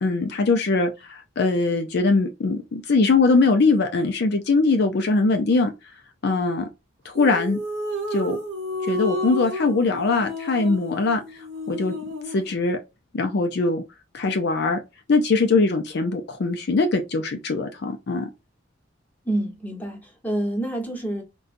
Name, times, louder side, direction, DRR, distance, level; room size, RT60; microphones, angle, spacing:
voice 1, 0.0-5.7 6.2-6.7 7.0-7.6 8.1-8.4 8.8-12.0 12.3-12.8 13.1-13.8 14.1-14.8 15.1-18.3, left 3 dB, 55° left, 0.4 m, -21 dB
sound 1, 7.1-12.5, left 1 dB, 65° right, 1.1 m, -31 dB
voice 2, 19.2-21.2, right 1 dB, 10° left, 1.0 m, -27 dB
3.8 x 2.3 x 2.5 m
head